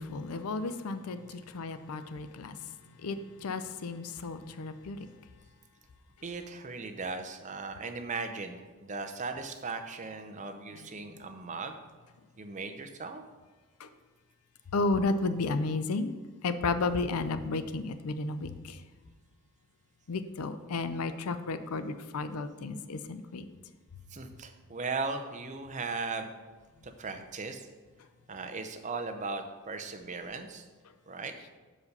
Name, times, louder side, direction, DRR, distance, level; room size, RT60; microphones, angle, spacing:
voice 1, 0.0-2.7 3.0-5.1 13.8-13.9 14.7-16.1 16.4-18.8 20.1-23.5, left 3 dB, 80° left, 11 dB, 0.5 m, -33 dB
voice 2, 6.2-11.8 12.4-13.2 24.1-26.3 26.8-27.7 28.3-30.6 31.1-31.3, right 4 dB, 35° right, 6 dB, 0.6 m, -37 dB
5.4 x 4.9 x 6.5 m, 1.4 s
head